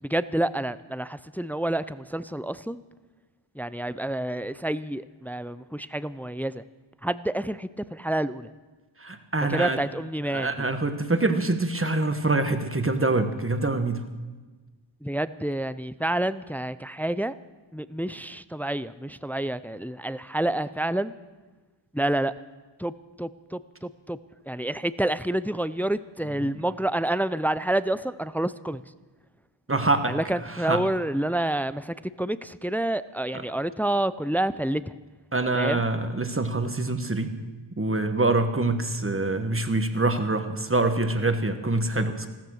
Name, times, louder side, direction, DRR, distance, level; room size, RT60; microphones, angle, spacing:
voice 1, 0.0-2.8 3.6-6.6 7.0-8.5 9.5-10.5 15.0-17.4 17.7-21.1 21.9-22.3 22.8-24.2 24.5-28.8 30.0-35.0 35.5-35.8, right 1 dB, 5° left, 15 dB, 0.4 m, -28 dB
voice 2, 9.0-9.8 10.3-14.0 26.4-26.5 29.7-30.2 30.5-30.8 35.3-37.3 37.8-42.3, right 2 dB, 25° right, 8 dB, 1.3 m, -25 dB
15.0 x 13.5 x 6.4 m, 1.3 s
wide cardioid pair, 60°, 48 cm